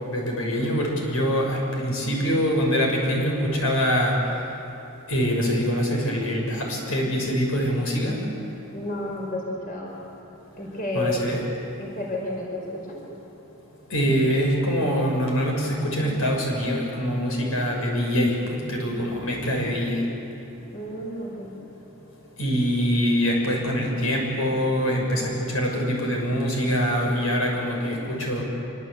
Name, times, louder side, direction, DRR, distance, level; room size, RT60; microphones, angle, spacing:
voice 1, 0.1-4.2 5.1-8.2 10.9-11.4 13.9-20.0 22.4-28.4, equal, 75° left, 0 dB, 6.4 m, -24 dB
voice 2, 8.7-10.0 10.6-11.2 11.8-13.0 20.7-21.5, left 2 dB, 40° left, -2 dB, 5.0 m, -31 dB
26.5 x 25.0 x 8.3 m, 2.8 s
head